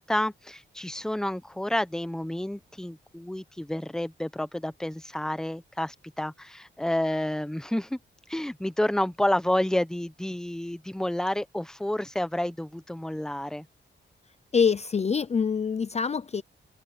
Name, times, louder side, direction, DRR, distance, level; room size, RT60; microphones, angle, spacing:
voice 1, 0.0-8.0 8.3-13.6, left 1 dB, 5° left, 0.9 m, -29 dB
voice 2, 14.5-16.4, left 6 dB, 35° left, 0.6 m, -25 dB
open air
wide cardioid pair, 135°, 20 cm